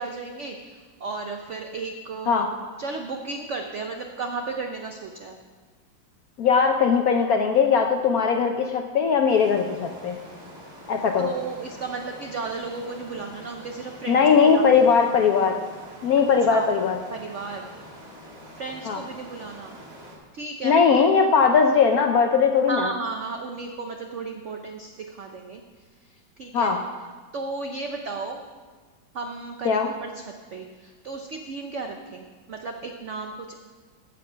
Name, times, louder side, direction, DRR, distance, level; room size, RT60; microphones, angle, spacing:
voice 1, 0.0-2.5 2.8-5.4 11.2-14.8 16.5-16.6 17.1-17.6 18.5-19.7 20.3-20.7 22.7-25.6 26.1-26.7 27.3-28.4 29.1-33.6, right 4 dB, 75° right, 4 dB, 0.6 m, -34 dB
voice 2, 6.4-10.2 10.9-11.3 14.1-15.6 16.0-17.0 18.8-19.0 20.6-22.9 26.5-26.8 29.6-29.9, left 6 dB, 70° left, 4 dB, 0.8 m, -19 dB
sound 1, 9.3-20.2, equal, 45° right, 2.5 m, -45 dB
15.0 x 5.2 x 5.6 m, 1.5 s
omnidirectional pair, 2.1 m